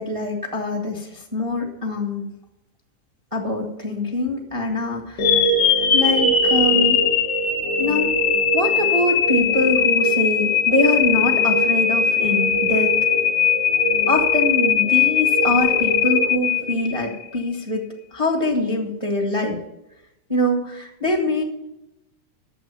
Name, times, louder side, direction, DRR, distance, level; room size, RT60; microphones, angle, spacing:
voice 1, 0.0-2.3 3.3-5.4 5.9-7.0 7.8-8.1 8.5-12.9 14.1-17.8 18.1-19.6 20.3-21.4, left 2 dB, 15° right, -1 dB, 1.4 m, -24 dB
sound 1, 5.2-17.3, left 5 dB, 55° left, 1.7 m, -19 dB
11.0 x 7.8 x 7.1 m, 0.89 s
omnidirectional pair, 3.5 m